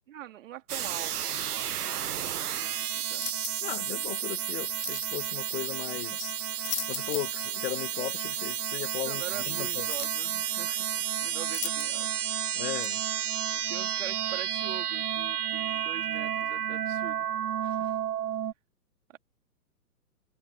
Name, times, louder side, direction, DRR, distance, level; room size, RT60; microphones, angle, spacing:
voice 1, 0.1-3.3 6.1-6.2 9.1-12.6 13.5-17.3 17.6-18.0 19.1-19.2, right 12 dB, 50° right, 3.5 m, -44 dB
sound 1, 0.7-18.5, right 10 dB, 70° right, 1.0 m, -31 dB
sound 2, 3.1-3.8 4.8-5.1 6.4-7.4 7.8-7.9 9.2-9.3 9.9-10.2 11.5-12.2 12.8-13.0, left 10 dB, 70° left, 0.8 m, -38 dB
voice 2, 3.6-9.9 12.5-13.0, left 19 dB, 35° left, 1.4 m, -37 dB
sound 3, 5.1-13.4, right 16 dB, 25° right, 2.3 m, -56 dB
figure-of-eight pair, 120°, 48 cm